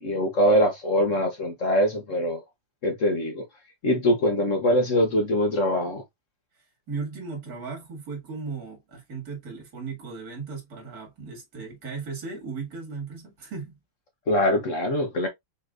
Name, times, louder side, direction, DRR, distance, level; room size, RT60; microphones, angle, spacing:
voice 1, 0.0-2.4 2.8-3.4 3.8-6.0 14.3-15.3, equal, 50° left, 1.0 m, -23 dB
voice 2, 6.9-13.8, right 4 dB, 45° right, 2.5 m, -36 dB
5.6 x 3.2 x 2.5 m
omnidirectional pair, 2.4 m